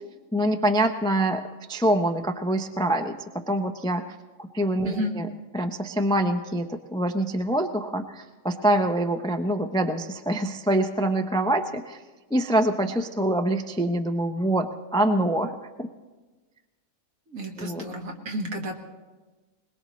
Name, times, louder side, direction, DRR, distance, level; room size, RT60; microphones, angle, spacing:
voice 1, 0.3-1.4 1.7-4.1 4.4-5.3 5.5-12.0 12.3-15.9 17.6-17.9, right 1 dB, 5° left, 6 dB, 0.3 m, -25 dB
voice 2, 17.3-18.7, equal, 75° right, 2 dB, 2.0 m, -31 dB
21.5 x 21.0 x 3.1 m, 1.3 s
omnidirectional pair, 1.4 m